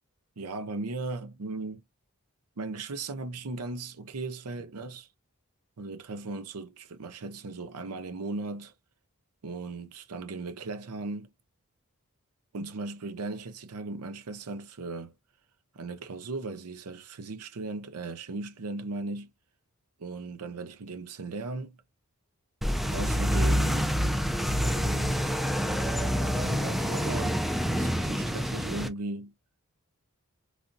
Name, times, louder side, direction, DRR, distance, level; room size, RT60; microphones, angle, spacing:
voice 1, 0.4-1.8 2.6-5.1 5.8-8.7 9.4-11.3 12.5-15.1 15.7-19.3 20.0-21.8 22.9-23.9 24.6-25.2 26.3-27.4 27.8-29.3, right 3 dB, 90° right, 0.6 m, -37 dB
sound 1, 22.6-28.9, equal, ahead, 0.4 m, -27 dB
3.3 x 2.6 x 2.5 m
head